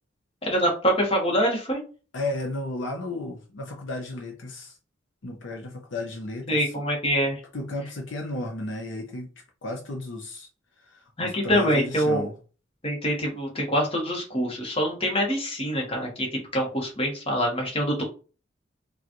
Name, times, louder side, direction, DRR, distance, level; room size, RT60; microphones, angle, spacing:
voice 1, 0.4-1.8 6.5-7.4 11.2-12.3 12.8-18.0, equal, 30° left, 1.2 m, -25 dB
voice 2, 2.1-4.8 5.2-6.7 7.5-9.3 9.6-10.5 10.8-12.4 18.0-18.1, left 2 dB, 70° left, 0.7 m, -34 dB
4.8 x 2.4 x 2.9 m
head